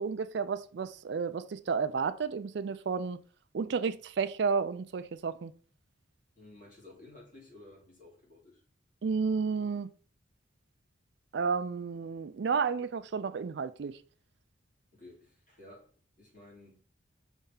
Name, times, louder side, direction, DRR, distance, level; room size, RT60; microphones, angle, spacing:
voice 1, 0.0-3.2 3.5-5.5 9.0-9.9 11.3-14.0, right 5 dB, 60° right, 0.4 m, -32 dB
voice 2, 6.4-8.6 14.9-15.9 16.2-16.8, left 2 dB, 40° left, 2.8 m, -54 dB
5.4 x 3.5 x 5.6 m
head